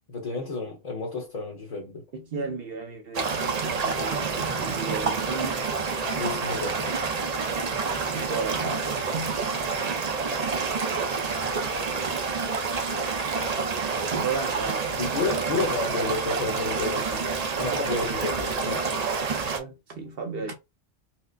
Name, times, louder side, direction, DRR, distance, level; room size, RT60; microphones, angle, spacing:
voice 1, 0.1-2.1 6.1-7.0 15.0-18.9, left 3 dB, 40° left, 0.9 m, -31 dB
voice 2, 2.1-5.6 8.1-9.5 11.5-11.6 14.1-15.0 19.4-20.5, right 4 dB, 65° right, 0.9 m, -34 dB
sound 1, 3.1-19.6, right 4 dB, 45° right, 0.6 m, -28 dB
4.4 x 2.0 x 2.5 m
omnidirectional pair, 1.1 m